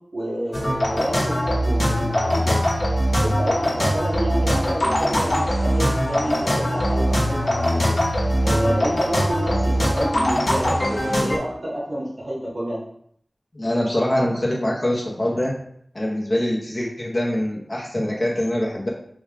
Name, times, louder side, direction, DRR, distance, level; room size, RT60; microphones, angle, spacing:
voice 1, 0.1-2.6 3.2-7.9 8.4-12.8, equal, 75° right, -8 dB, 0.9 m, -28 dB
sound 1, 0.5-11.4, equal, 60° left, 0.9 m, -21 dB
voice 2, 13.5-15.5 15.9-18.9, left 1 dB, 35° left, -3 dB, 0.7 m, -24 dB
3.4 x 2.3 x 3.3 m, 0.66 s
wide cardioid pair, 60°, 0 cm